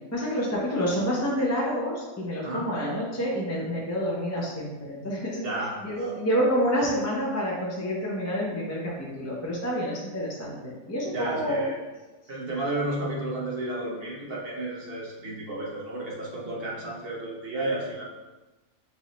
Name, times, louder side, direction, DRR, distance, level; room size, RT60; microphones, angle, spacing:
voice 1, 0.1-5.4 5.8-11.6, equal, 15° left, -5 dB, 0.6 m, -28 dB
voice 2, 5.4-6.1 11.1-11.8 12.3-18.0, right 2 dB, 45° right, -3 dB, 1.0 m, -32 dB
6.2 x 2.7 x 3.1 m, 1.1 s
omnidirectional pair, 1.6 m